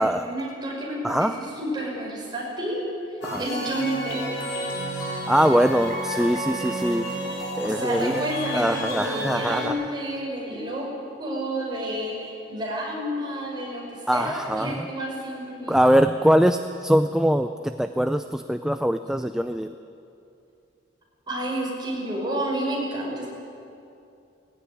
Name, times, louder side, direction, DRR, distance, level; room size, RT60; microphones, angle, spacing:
voice 1, 0.0-1.3 1.6-2.8 3.4-4.5 7.6-10.9 11.2-15.8 21.3-23.3, right 1 dB, 25° right, -3 dB, 5.7 m, -30 dB
voice 2, 1.0-1.4 3.2-3.5 5.3-7.1 7.6-8.3 8.5-9.8 14.1-14.9 15.7-19.7, equal, 5° right, 8 dB, 0.4 m, -22 dB
sound 1, 3.2-9.7, right 1 dB, 70° left, 4.6 m, -31 dB
19.5 x 16.0 x 10.0 m, 2.7 s
head